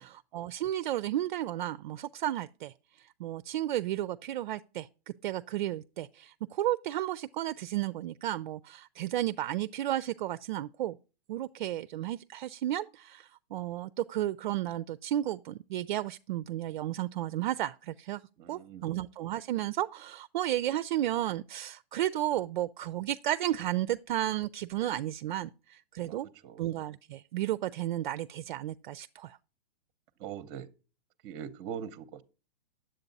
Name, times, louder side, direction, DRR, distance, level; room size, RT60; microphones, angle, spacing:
voice 1, 0.0-2.7 3.2-4.9 5.2-11.0 11.3-18.2 18.5-26.3 26.6-29.4, right 13 dB, 55° right, 0.4 m, -33 dB
voice 2, 18.4-18.9 26.0-26.6 30.2-30.7 31.2-32.2, right 8 dB, 30° right, 0.7 m, -42 dB
9.8 x 7.7 x 4.0 m
hypercardioid pair, 150°, 30 cm